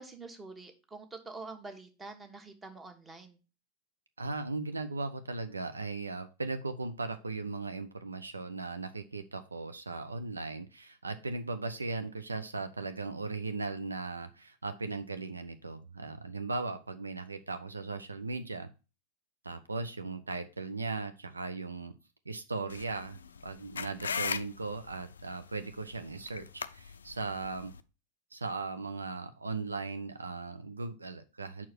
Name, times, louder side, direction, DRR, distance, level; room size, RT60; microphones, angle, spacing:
voice 1, 0.0-3.4, right 3 dB, 15° right, 6 dB, 1.3 m, -46 dB
voice 2, 4.2-18.7 19.4-21.9 22.3-23.2 23.4-27.7 28.3-31.7, right 3 dB, 80° right, 9 dB, 0.5 m, -38 dB
sound 1, 22.7-27.8, left 6 dB, 70° left, 0.4 m, -40 dB
5.7 x 4.6 x 6.0 m, 0.31 s
figure-of-eight pair, 90°, 0 cm